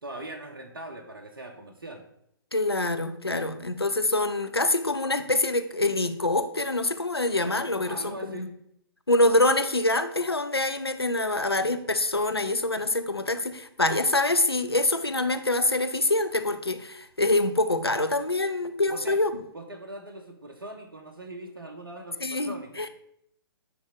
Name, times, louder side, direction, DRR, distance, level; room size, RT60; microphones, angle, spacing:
voice 1, 0.0-2.0 7.8-8.6 18.9-19.2 19.5-22.8, right 1 dB, 65° right, 3 dB, 1.1 m, -41 dB
voice 2, 2.5-8.5 9.1-19.3 22.2-22.9, left 2 dB, 90° left, 10 dB, 0.7 m, -25 dB
9.6 x 3.5 x 5.1 m, 0.73 s
figure-of-eight pair, 125°, 13 cm